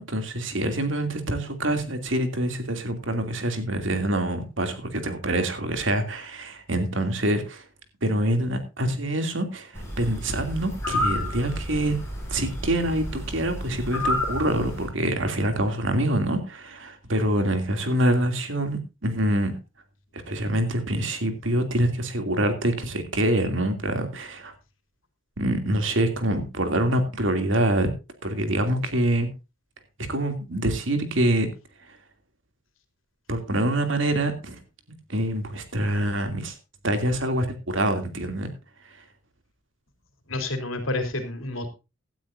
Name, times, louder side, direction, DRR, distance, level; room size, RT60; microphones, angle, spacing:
voice 1, 0.0-7.6 8.0-12.0 12.3-19.5 20.3-24.5 25.4-27.9 28.2-29.3 30.1-31.5 31.9-32.0 33.3-34.6 35.1-36.5 36.8-38.5, right 1 dB, 70° right, 7 dB, 2.7 m, -25 dB
sound 1, 9.7-14.9, left 1 dB, 15° left, 6.8 m, -31 dB
voice 2, 40.3-41.7, left 2 dB, 80° left, 7 dB, 3.3 m, -29 dB
17.0 x 12.0 x 2.6 m, 0.28 s
head